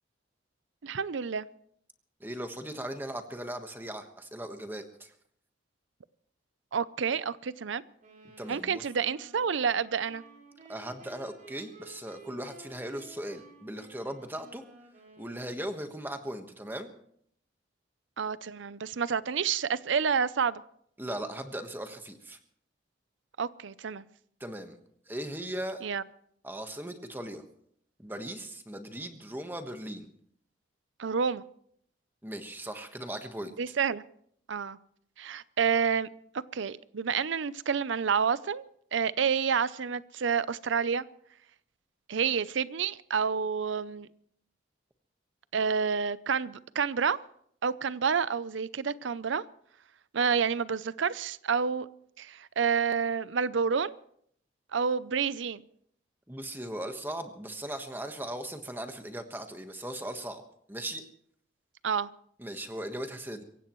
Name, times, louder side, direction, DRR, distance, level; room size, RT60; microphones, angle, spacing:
voice 1, 0.8-1.5 6.7-7.8 8.5-10.2 18.2-20.6 23.4-24.1 25.8-26.0 31.0-31.4 33.6-34.0 34.5-34.8 35.2-36.1 36.5-38.7 38.9-41.0 42.1-44.1 45.5-47.2 47.6-49.4 50.1-51.9 52.2-53.9 54.7-55.6 61.8-62.1, right 6 dB, 80° right, 17 dB, 0.6 m, -29 dB
voice 2, 2.2-5.1 8.4-8.8 10.7-14.6 15.2-16.9 21.0-22.4 24.4-24.8 25.1-25.8 26.4-27.4 28.0-30.1 32.2-33.5 56.3-60.4 60.7-61.0 62.4-63.4, right 1 dB, 10° right, 6 dB, 1.3 m, -38 dB
sound 1, 8.0-16.0, right 2 dB, 40° right, 6.4 m, -54 dB
25.5 x 16.0 x 3.1 m, 0.67 s
head